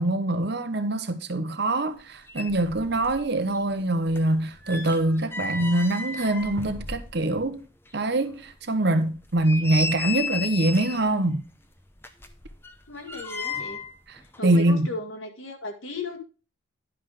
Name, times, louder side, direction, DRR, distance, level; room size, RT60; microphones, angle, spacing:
voice 1, 0.0-7.6 7.9-11.4 14.1-14.9, right 1 dB, 55° right, 0.9 m, -24 dB
sound 1, 2.0-2.1 2.3-3.3 3.5-7.5 7.9-8.0 8.5-8.6 9.2-11.1 12.0-14.0 14.2-14.4, left 4 dB, 10° left, 0.7 m, -34 dB
voice 2, 12.9-13.8 14.4-16.2, left 2 dB, 80° left, 1.8 m, -35 dB
10.0 x 5.7 x 4.9 m
head